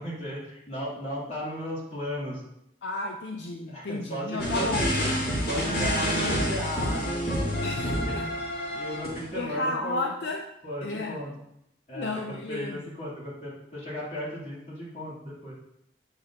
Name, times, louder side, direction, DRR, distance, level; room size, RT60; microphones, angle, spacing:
voice 1, 0.0-2.4 3.7-5.0 5.5-10.1 10.6-11.3 11.9-15.5, equal, 40° left, -7 dB, 3.1 m, -35 dB
voice 2, 2.8-5.0 7.6-8.2 9.3-10.4 10.8-11.2 11.9-12.8, left 2 dB, 75° left, 2 dB, 0.6 m, -32 dB
sound 1, 4.4-9.3, equal, 55° left, 1.9 m, -28 dB
8.0 x 6.8 x 2.9 m, 0.80 s
head